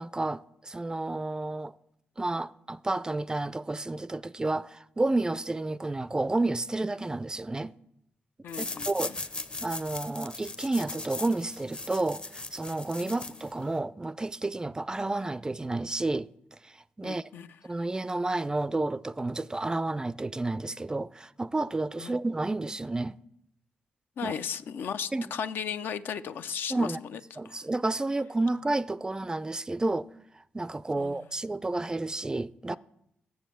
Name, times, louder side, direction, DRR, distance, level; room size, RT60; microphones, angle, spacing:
voice 1, 0.0-1.7 2.2-7.7 8.6-9.1 9.6-16.3 16.6-17.3 17.6-23.2 24.2-24.3 25.1-25.3 26.7-27.0 27.4-30.1 30.5-32.8, right 2 dB, 20° right, 0.3 m, -31 dB
voice 2, 8.4-9.2 13.0-13.2 17.0-17.5 22.0-22.2 24.2-27.2 27.4-27.6 31.0-31.3, left 7 dB, 75° left, 0.5 m, -36 dB
sound 1, 8.5-13.8, left 2 dB, 30° left, 0.7 m, -39 dB
7.1 x 7.0 x 7.5 m
supercardioid pair, 55°, 4 cm